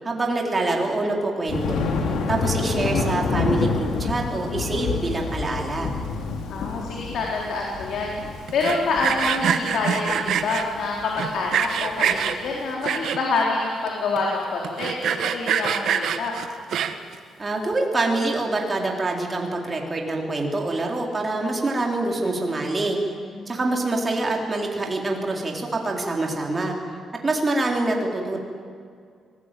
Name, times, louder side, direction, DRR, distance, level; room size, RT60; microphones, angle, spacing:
voice 1, 0.0-5.9 17.4-23.0 23.5-26.8 27.2-28.4, right 2 dB, 25° right, 0 dB, 3.9 m, -25 dB
Thunder, 1.5-12.6, left 4 dB, 90° left, 3.0 m, -28 dB
voice 2, 6.5-8.2 8.5-16.3 23.3-23.6, left 3 dB, 70° left, -2 dB, 4.0 m, -26 dB
Sawing, 8.5-10.6 11.2-12.4 12.8-13.4 13.9-14.0 14.2-14.3 14.6-17.1, right 8 dB, 70° right, 1.5 m, -24 dB
25.5 x 19.5 x 9.2 m, 2.2 s
cardioid pair, 145°, 0 cm